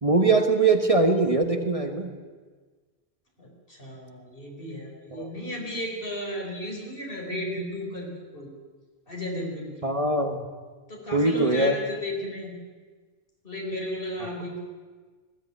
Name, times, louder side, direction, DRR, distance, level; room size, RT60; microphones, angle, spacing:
voice 1, 0.0-2.1 5.1-5.3 9.8-10.4 11.1-11.7, right 3 dB, 35° right, 5 dB, 1.4 m, -22 dB
voice 2, 3.4-8.5 9.1-9.9 10.9-12.5 13.4-14.6, equal, 60° left, 0 dB, 4.6 m, -34 dB
20.0 x 16.0 x 9.6 m, 1.4 s
omnidirectional pair, 1.1 m